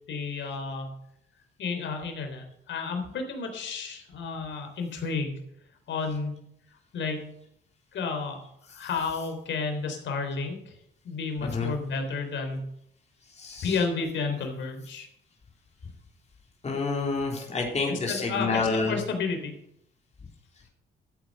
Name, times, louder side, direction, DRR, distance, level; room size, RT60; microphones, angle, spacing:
voice 1, 0.1-0.9 1.6-5.3 5.9-6.5 6.9-7.3 7.9-8.4 8.7-10.8 11.0-12.6 13.6-15.1 17.9-18.6 18.9-19.6, left 4 dB, 70° left, 5 dB, 3.7 m, -31 dB
voice 2, 8.7-9.3 11.4-11.7 13.2-13.9 16.6-19.0, left 3 dB, 35° left, -1 dB, 3.6 m, -29 dB
13.0 x 8.9 x 6.5 m, 0.76 s
cardioid pair, 90°, 20 cm